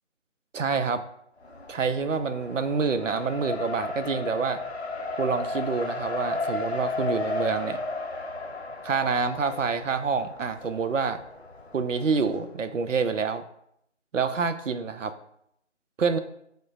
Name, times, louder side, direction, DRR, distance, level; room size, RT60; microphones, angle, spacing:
voice 1, 0.5-1.0 1.7-4.6 5.2-7.8 8.8-11.2 11.7-13.4 14.1-15.1 16.0-16.2, right 5 dB, 85° right, 9 dB, 0.5 m, -27 dB
Race car auto racing, 1.4-12.4, left 3 dB, 60° left, 0.5 m, -34 dB
6.1 x 2.1 x 2.4 m, 0.73 s
figure-of-eight pair, 165°, 37 cm